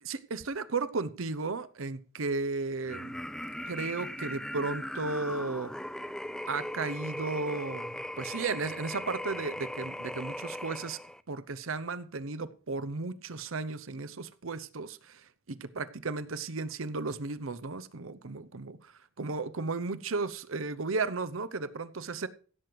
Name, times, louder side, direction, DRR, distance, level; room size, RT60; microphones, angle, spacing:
voice 1, 0.0-3.2 3.7-5.7 6.5-11.0 11.3-15.2 15.5-18.8 19.2-22.3, right 3 dB, 85° right, 0.8 m, -34 dB
sound 1, 2.8-11.2, left 1 dB, 5° left, 0.5 m, -39 dB
15.5 x 7.8 x 4.7 m
head